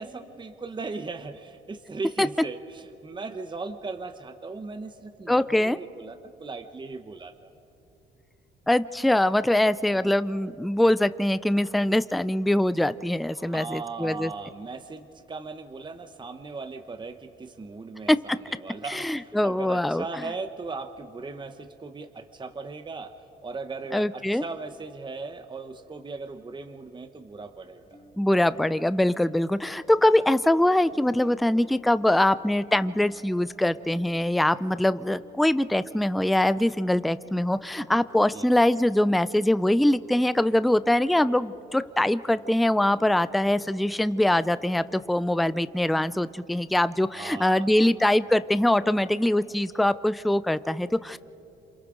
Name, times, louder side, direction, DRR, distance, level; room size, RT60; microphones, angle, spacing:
voice 1, 0.0-7.5 9.9-10.1 13.3-23.1 23.4-28.0 38.3-38.5 47.1-47.9, right 4 dB, 25° right, 8 dB, 0.9 m, -38 dB
voice 2, 5.3-5.8 8.7-14.3 18.1-18.2 18.9-20.0 23.9-24.4 28.2-51.2, left 1 dB, ahead, 15 dB, 0.4 m, -23 dB
sound 1, 27.8-46.4, left 1 dB, 35° left, 4.4 m, -54 dB
28.0 x 27.0 x 3.8 m, 2.9 s
cardioid pair, 90°, 20 cm